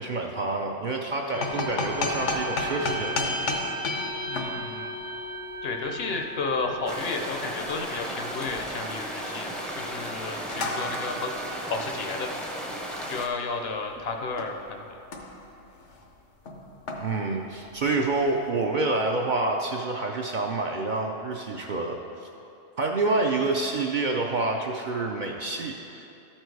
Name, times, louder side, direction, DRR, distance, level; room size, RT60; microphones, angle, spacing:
voice 1, 0.0-3.5 17.0-22.3 22.8-26.0, right 3 dB, 55° right, 1 dB, 0.5 m, -28 dB
sound 1, 1.3-14.0 14.4-14.7 15.0-15.5 15.8-16.1 16.5-18.0, left 1 dB, 85° left, 1.2 m, -34 dB
voice 2, 4.3-4.9 5.6-11.3 11.7-12.3 13.1-15.0, left 4 dB, 65° left, 4 dB, 0.9 m, -32 dB
sound 2, 6.9-13.3, equal, ahead, 0.5 m, -35 dB
13.0 x 4.4 x 4.6 m, 2.9 s
omnidirectional pair, 1.2 m